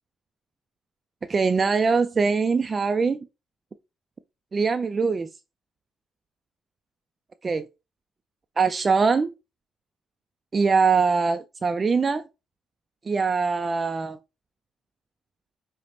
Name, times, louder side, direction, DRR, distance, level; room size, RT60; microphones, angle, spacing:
voice 1, 1.3-3.2 4.5-5.3 7.4-7.7 8.6-9.3 10.5-12.3 13.0-14.2, right 4 dB, 35° right, 0.3 m, -22 dB
4.9 x 2.1 x 2.8 m
cardioid pair, 90°, 0 cm